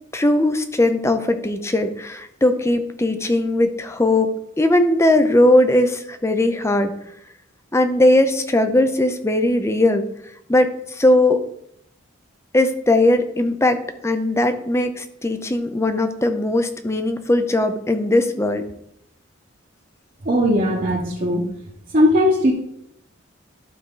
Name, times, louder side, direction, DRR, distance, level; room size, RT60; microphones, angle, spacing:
voice 1, 0.1-6.9 7.7-10.0 10.5-11.4 12.5-18.6, left 1 dB, 15° left, 8 dB, 0.6 m, -19 dB
voice 2, 20.2-21.5 21.9-22.5, equal, 40° right, -3 dB, 1.1 m, -18 dB
12.0 x 4.6 x 3.8 m, 0.74 s
head